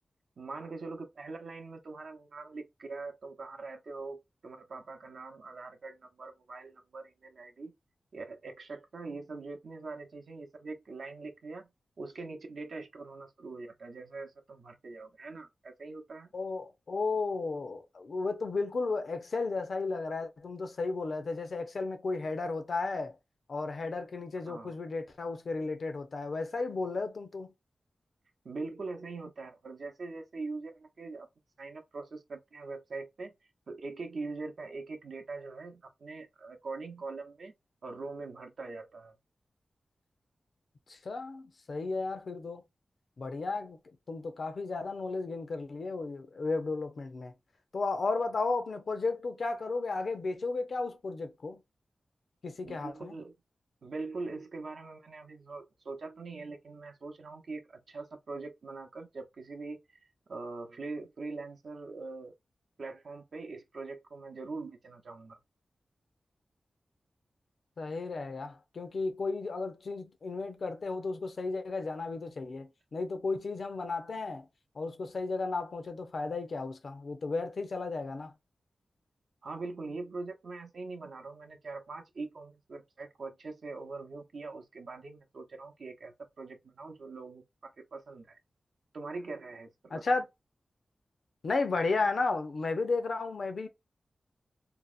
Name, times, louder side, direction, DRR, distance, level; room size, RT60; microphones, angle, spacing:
voice 1, 0.4-4.2 4.4-7.7 8.1-11.7 12.0-16.3 24.4-24.8 28.4-31.3 31.6-33.3 33.7-37.5 37.8-39.2 52.6-53.3 53.8-60.0 60.3-62.3 62.8-65.4 79.4-88.4 88.9-90.2, right 3 dB, 70° right, 0.6 m, -42 dB
voice 2, 16.3-23.1 23.5-27.5 40.9-42.6 43.2-43.8 44.1-47.3 47.7-51.6 52.4-53.2 67.8-74.5 74.8-78.3 89.9-90.3 91.4-93.7, left 3 dB, 65° left, 0.5 m, -34 dB
2.7 x 2.0 x 2.3 m
wide cardioid pair, 105°, 0 cm